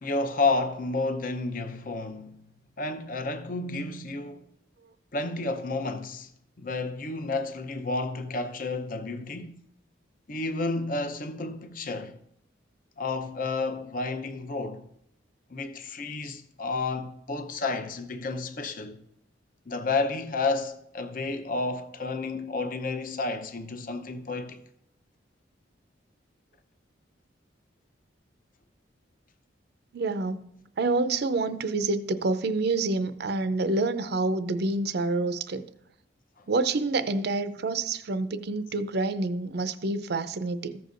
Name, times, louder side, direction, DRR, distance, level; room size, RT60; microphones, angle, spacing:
voice 1, 0.0-2.4 2.8-4.5 5.1-6.3 6.6-9.6 10.3-12.2 13.0-14.9 15.5-19.0 19.7-24.6 36.4-36.5, left 3 dB, 45° left, 0.7 m, -31 dB
voice 2, 29.9-30.5 30.8-35.6 36.5-40.8, right 3 dB, 55° right, 0.5 m, -27 dB
14.5 x 6.7 x 2.5 m
head